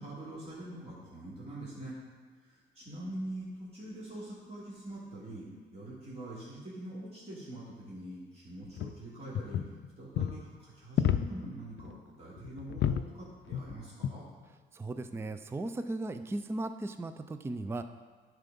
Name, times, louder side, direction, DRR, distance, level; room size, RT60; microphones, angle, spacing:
voice 1, 0.0-2.0 2.4-5.5 5.7-14.3, right 1 dB, 30° right, -8 dB, 2.9 m, -44 dB
sound 1, 8.6-8.9 9.3-9.9 10.2-10.4 11.0-11.5 11.8-12.0 12.4-13.1 13.5-13.7 14.0-14.2 15.0-15.2, left 10 dB, 65° left, 0.5 m, -31 dB
voice 2, 14.7-17.8, right 2 dB, 10° right, 9 dB, 0.4 m, -36 dB
10.5 x 4.7 x 5.3 m, 1.4 s
cardioid pair, 90°, 20 cm